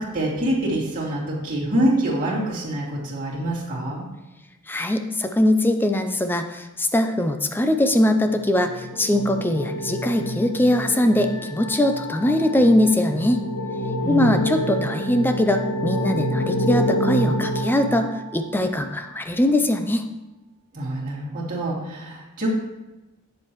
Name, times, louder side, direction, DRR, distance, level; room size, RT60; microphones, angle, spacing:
voice 1, 0.0-4.0 14.0-14.6 20.7-22.5, right 1 dB, 40° right, -6 dB, 2.4 m, -25 dB
voice 2, 4.7-13.4 14.1-20.1, left 1 dB, 10° left, 7 dB, 0.5 m, -21 dB
sound 1, 8.0-18.7, equal, 75° left, 1.2 m, -28 dB
8.4 x 7.2 x 3.1 m, 1.0 s
head